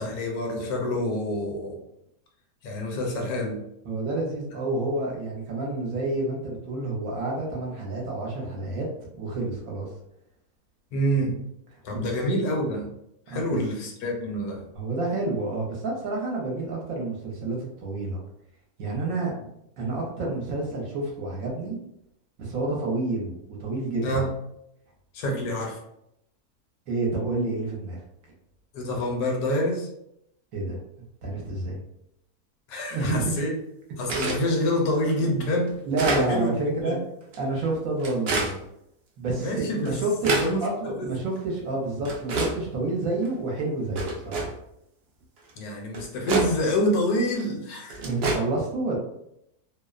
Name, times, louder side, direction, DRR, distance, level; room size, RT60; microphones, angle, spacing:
voice 1, 0.0-1.8 2.6-3.6 10.9-11.4 11.8-12.9 13.3-14.6 24.0-24.3 25.1-25.8 28.7-29.9 32.7-33.5 34.0-35.7 36.1-36.5 36.8-37.0 39.4-40.0 40.2-40.6 40.8-41.1 45.6-48.0, left 1 dB, 75° left, 1 dB, 1.0 m, -27 dB
voice 2, 3.8-8.9 9.2-9.9 11.9-12.1 13.3-13.4 14.8-18.2 18.8-19.3 19.8-21.8 22.4-24.1 25.3-25.4 26.9-28.0 30.5-30.8 31.2-31.8 32.9-33.3 35.8-37.0 37.4-38.6 39.2-44.5 48.0-49.0, right 2 dB, 70° right, -1 dB, 1.0 m, -29 dB
sound 1, 34.1-34.4 35.1-35.2 35.7-36.3 37.2-37.4 38.0-38.6 39.4-39.5 39.9-40.5 41.3-41.4 42.1-42.6 43.2-43.3 44.0-44.5 45.5-45.6 45.9-46.5 47.4-47.5 47.9-48.4, right 3 dB, 90° right, 0.5 m, -27 dB
2.6 x 2.0 x 2.3 m, 0.78 s
omnidirectional pair, 1.7 m